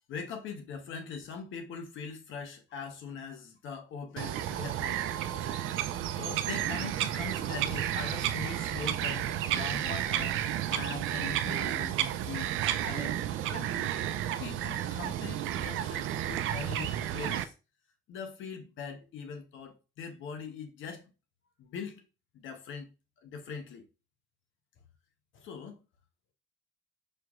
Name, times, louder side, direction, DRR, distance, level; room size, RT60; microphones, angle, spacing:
voice 1, 0.1-10.3 10.7-12.6 12.8-13.2 13.5-13.7 14.4-17.5 18.1-21.0 21.6-22.0 22.3-22.9 23.2-23.9 25.3-25.8, left 6 dB, 80° left, 0.9 m, -42 dB
Bird vocalization bird call bird song, 4.2-17.4, right 11 dB, 85° right, 0.4 m, -32 dB
5.4 x 3.0 x 2.4 m
cardioid pair, 90°, 20 cm